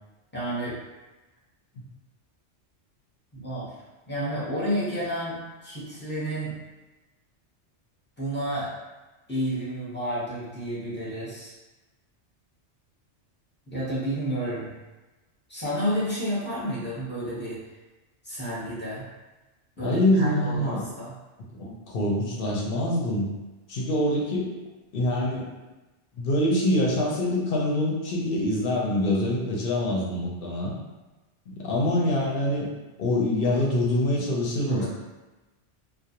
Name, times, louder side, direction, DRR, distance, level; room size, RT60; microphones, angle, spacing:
voice 1, 0.3-0.7 3.3-3.7 4.1-5.4 5.6-6.6 8.2-8.7 9.3-11.5 13.7-14.8 15.5-17.6 18.2-19.1 19.8-21.1 34.6-34.9, equal, 10° left, -9 dB, 0.7 m, -30 dB
voice 2, 19.8-20.8 21.5-23.3 23.7-24.5 24.9-25.5 26.2-30.7 31.5-32.7 33.0-34.9, left 1 dB, 60° left, -3 dB, 0.7 m, -25 dB
2.3 x 2.0 x 2.8 m, 1.1 s
omnidirectional pair, 1.2 m